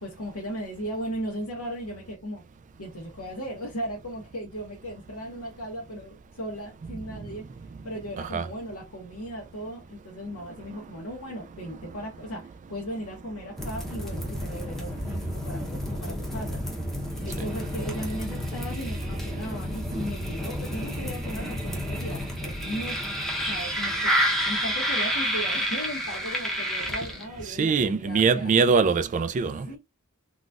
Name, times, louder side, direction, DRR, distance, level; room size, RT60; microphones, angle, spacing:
voice 1, 0.0-2.4 2.8-7.5 7.8-16.6 17.2-23.0 23.4-24.1 24.4-28.5 29.7-29.8, equal, 80° left, 0.9 m, -37 dB
voice 2, 8.2-8.5 17.4-17.5 19.9-20.0 23.5-24.0 27.4-29.7, right 5 dB, 35° right, 0.3 m, -24 dB
sound 1, 13.6-27.5, equal, ahead, 0.7 m, -30 dB
3.8 x 2.3 x 2.4 m
head